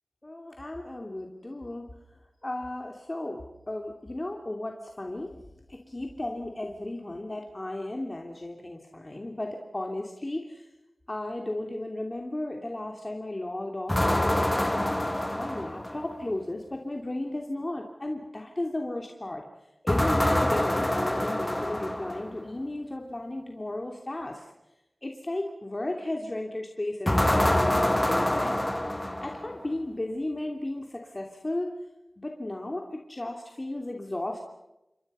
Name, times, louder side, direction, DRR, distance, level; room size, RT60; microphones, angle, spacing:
voice 1, 0.2-1.8 2.4-3.4 3.7-5.4 5.7-10.7 11.1-14.9 15.4-19.4 19.8-24.5 25.0-28.6 29.2-31.7 32.2-32.8 33.1-34.4, left 1 dB, 35° left, 1 dB, 2.9 m, -34 dB
sound 1, 13.9-16.2 19.9-22.4 27.1-29.7, left 1 dB, 15° left, 1.4 m, -26 dB
29.0 x 24.5 x 5.6 m, 0.95 s
wide cardioid pair, 60°, 0 cm